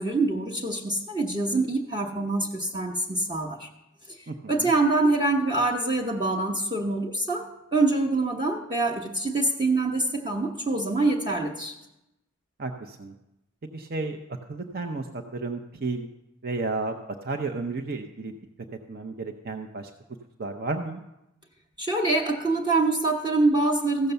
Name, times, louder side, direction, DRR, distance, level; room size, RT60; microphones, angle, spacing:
voice 1, 0.0-3.7 4.5-11.7 21.8-24.1, right 2 dB, 20° right, -1 dB, 1.0 m, -25 dB
voice 2, 4.3-4.7 12.6-13.1 13.7-14.2 14.5-16.1 16.4-16.9 17.2-18.3 18.9-19.9 20.4-21.0, right 3 dB, 45° right, 5 dB, 0.7 m, -32 dB
15.0 x 6.7 x 6.8 m, 0.90 s
head